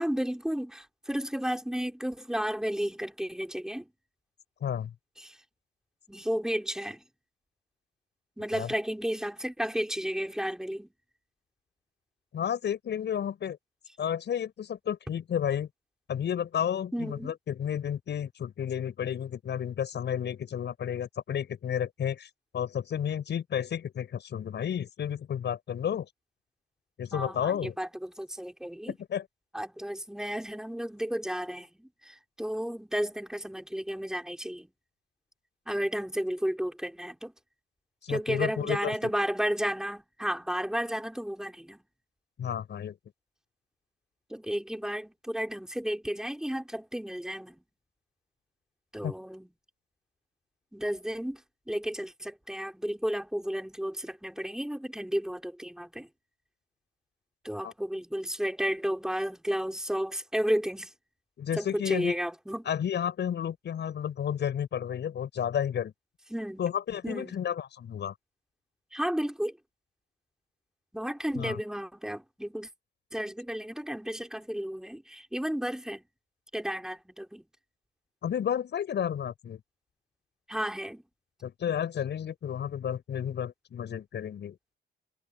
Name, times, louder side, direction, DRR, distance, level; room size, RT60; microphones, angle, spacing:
voice 1, 0.0-3.9 5.2-5.4 6.1-7.0 8.4-10.9 16.9-17.3 27.1-28.9 29.5-34.7 35.7-37.3 38.1-41.8 44.3-47.6 48.9-49.5 50.7-51.4 51.7-56.1 57.4-60.9 61.6-62.7 66.3-66.6 67.0-67.4 68.9-69.6 70.9-72.7 73.1-76.0 76.5-77.4 80.5-81.0, equal, 5° right, 5.3 m, -33 dB
voice 2, 4.6-4.9 8.5-8.7 12.3-13.6 14.0-15.7 16.1-26.1 27.0-27.8 28.9-29.2 38.0-39.1 42.4-43.0 49.0-49.1 57.6-57.7 61.4-62.2 62.7-65.9 66.6-68.1 71.4-71.6 78.2-79.6 81.4-84.6, left 9 dB, 60° left, 7.8 m, -32 dB
cardioid pair, 90°, 20 cm